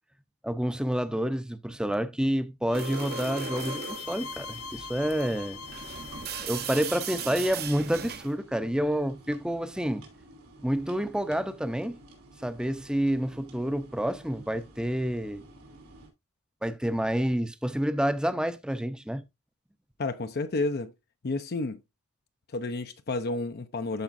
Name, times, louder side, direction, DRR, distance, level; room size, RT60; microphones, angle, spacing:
voice 1, 0.4-5.6 6.4-10.0 10.6-12.0 12.4-15.5 16.6-19.2, equal, 5° right, 0.6 m, -29 dB
sound 1, 2.7-7.6, left 5 dB, 80° left, 0.9 m, -42 dB
sound 2, 2.7-8.3, right 6 dB, 45° right, 0.8 m, -38 dB
sound 3, 4.2-16.1, right 2 dB, 85° right, 3.1 m, -52 dB
voice 2, 20.0-20.9 21.2-21.8 22.5-24.0, left 3 dB, 45° left, 0.5 m, -31 dB
13.0 x 4.9 x 2.5 m
head